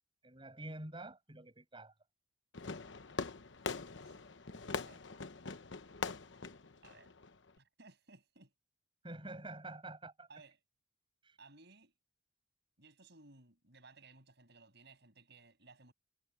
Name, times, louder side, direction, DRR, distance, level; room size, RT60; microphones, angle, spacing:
voice 1, 0.2-1.9 9.0-10.3 11.2-11.4, right 2 dB, 25° right, 7.4 m, -47 dB
Fireworks, 2.5-7.6, left 4 dB, 70° left, 1.0 m, -43 dB
voice 2, 4.7-5.1 6.8-7.1 7.6-8.5 10.3-10.6 11.4-11.9 12.8-15.9, right 3 dB, 60° right, 7.0 m, -60 dB
head